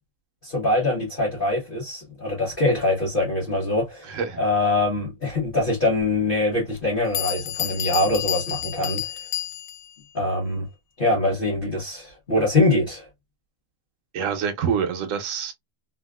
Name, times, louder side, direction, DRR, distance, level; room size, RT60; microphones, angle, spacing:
voice 1, 0.4-9.0 10.1-10.7 11.0-13.1, left 2 dB, 35° left, 1.3 m, -23 dB
voice 2, 4.1-4.4 14.1-15.5, right 7 dB, 60° right, 1.0 m, -26 dB
Bell, 6.8-6.9 7.1-9.9, left 12 dB, 70° left, 0.9 m, -30 dB
3.5 x 2.4 x 2.2 m
omnidirectional pair, 1.7 m